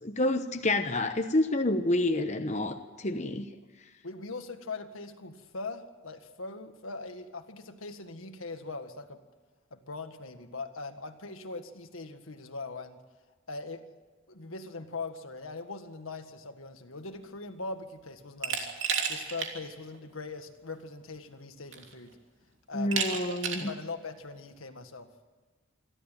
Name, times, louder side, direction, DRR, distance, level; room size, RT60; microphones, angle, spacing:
voice 1, 0.0-3.5 22.7-23.7, left 1 dB, 35° left, 6 dB, 1.0 m, -28 dB
voice 2, 4.0-9.2 9.7-13.0 13.5-13.8 14.3-18.7 19.1-22.2 22.7-23.4 23.7-25.1, left 3 dB, 85° left, 7 dB, 1.8 m, -41 dB
Glass, 18.4-19.5 19.9-20.0 21.2-21.3 21.7-22.1 22.9-23.7, right 6 dB, 60° right, 3.0 m, -31 dB
26.5 x 12.5 x 9.2 m, 1.4 s
head